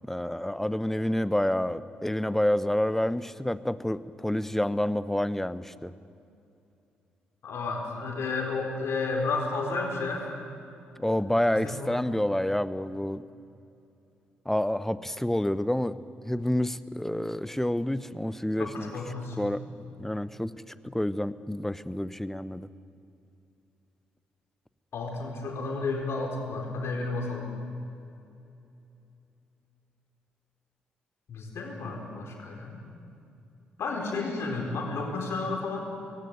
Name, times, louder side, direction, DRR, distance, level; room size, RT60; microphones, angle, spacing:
voice 1, 0.1-5.9 11.0-13.2 14.5-16.0 16.2-18.9 19.4-20.5 20.8-22.7, left 1 dB, 5° left, 15 dB, 0.8 m, -28 dB
voice 2, 7.4-10.4 11.5-11.9 18.6-19.4 24.9-27.5 31.3-32.8 33.8-35.8, left 3 dB, 55° left, 1 dB, 4.4 m, -32 dB
20.0 x 17.0 x 9.2 m, 2.7 s
hypercardioid pair, 45°, 5 cm